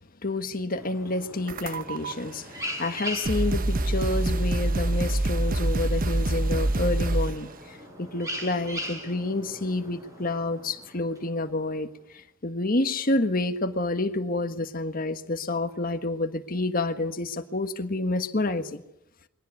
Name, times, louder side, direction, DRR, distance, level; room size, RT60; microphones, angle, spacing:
voice 1, 0.2-11.9 12.1-18.8, left 2 dB, 45° left, 1.5 m, -29 dB
sound 1, 0.8-11.7, equal, 15° right, 7.3 m, -41 dB
sound 2, 1.5-2.1 2.9-3.0 3.2-7.5, right 1 dB, 45° right, 1.2 m, -25 dB
22.5 x 18.0 x 9.5 m
head